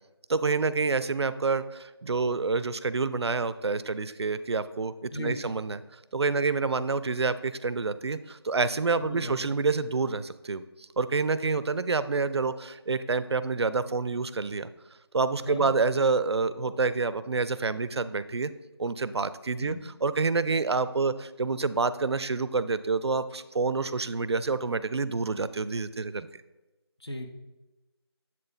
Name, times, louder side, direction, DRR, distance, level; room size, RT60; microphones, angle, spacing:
voice 1, 0.3-5.8 6.1-10.6 11.0-14.7 15.1-18.5 18.8-19.8 20.0-26.3, right 4 dB, 70° right, 15 dB, 0.4 m, -28 dB
voice 2, 5.1-5.6 9.0-9.4 15.4-15.7 19.6-19.8 27.0-27.3, left 1 dB, 70° left, 4 dB, 1.0 m, -36 dB
7.4 x 4.1 x 3.8 m, 1.1 s
figure-of-eight pair, 170°, 14 cm